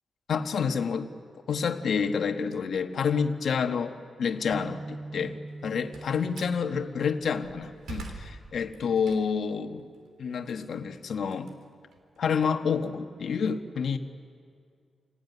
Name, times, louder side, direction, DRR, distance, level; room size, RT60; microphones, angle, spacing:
voice 1, 0.3-1.1 1.5-5.4 5.6-9.9 10.2-11.5 12.2-14.0, left 6 dB, 65° left, 6 dB, 1.5 m, -28 dB
sound 1, 4.5-8.5, right 2 dB, 50° right, 1.5 m, -43 dB
Slam, 5.5-6.6 7.2-9.5 9.9-12.3, right 3 dB, 85° right, 3.5 m, -45 dB
28.5 x 18.0 x 9.6 m, 2.3 s
wide cardioid pair, 140°, 0 cm